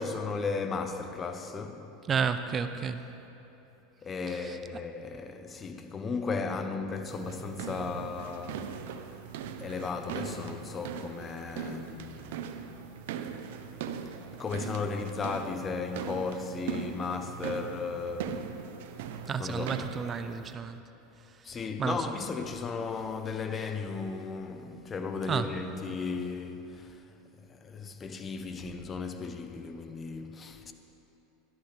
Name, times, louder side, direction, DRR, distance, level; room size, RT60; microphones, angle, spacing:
voice 1, 0.0-1.9 4.0-8.7 9.6-12.8 13.1-13.3 14.2-18.4 19.0-19.8 21.4-27.0 27.5-30.7, left 4 dB, 25° left, 0.9 m, -35 dB
voice 2, 2.1-3.0 4.3-4.6 19.3-20.8 21.8-22.0 25.3-25.5, right 6 dB, 30° right, 0.5 m, -31 dB
sound 1, 7.1-20.5, right 7 dB, 75° right, 0.7 m, -40 dB
18.0 x 12.5 x 3.4 m
supercardioid pair, 110°, 0 cm